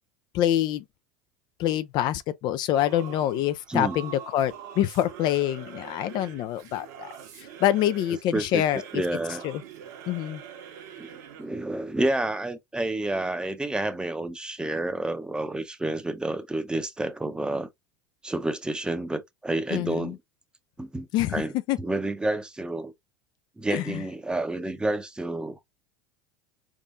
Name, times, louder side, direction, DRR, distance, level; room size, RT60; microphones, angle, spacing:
voice 1, 0.3-0.8 1.6-7.1 7.4-8.8 9.4-9.6 10.1-10.4 19.7-20.1 21.1-21.4 21.7-21.8 23.7-24.0, left 12 dB, 55° left, 0.4 m, -26 dB
Singing / Musical instrument, 2.7-11.6, right 9 dB, 75° right, 1.4 m, -44 dB
voice 2, 8.3-8.6 8.9-9.4 11.0-11.1 11.4-17.7 18.2-20.2 20.8-21.5 21.8-22.9 23.6-25.6, right 2 dB, 10° right, 0.7 m, -29 dB
4.2 x 3.6 x 2.4 m
supercardioid pair, 100°, 9 cm